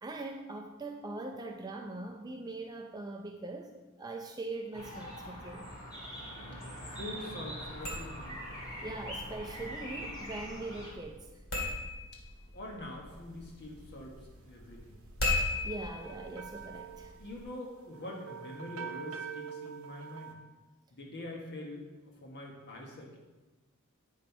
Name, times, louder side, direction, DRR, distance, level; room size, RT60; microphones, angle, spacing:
voice 1, 0.0-5.7 8.8-11.3 15.6-17.1, right 2 dB, 20° right, 2 dB, 0.4 m, -41 dB
sound 1, 4.7-10.9, equal, 20° left, 2.4 m, -43 dB
voice 2, 6.9-8.7 12.5-15.5 17.1-20.4 20.9-23.2, left 1 dB, 50° left, 0 dB, 1.4 m, -45 dB
sound 2, 7.7-17.4, left 2 dB, 65° left, 2.0 m, -39 dB
sound 3, 15.3-20.3, right 7 dB, 70° right, 0.8 m, -45 dB
8.8 x 5.6 x 4.5 m, 1.1 s
head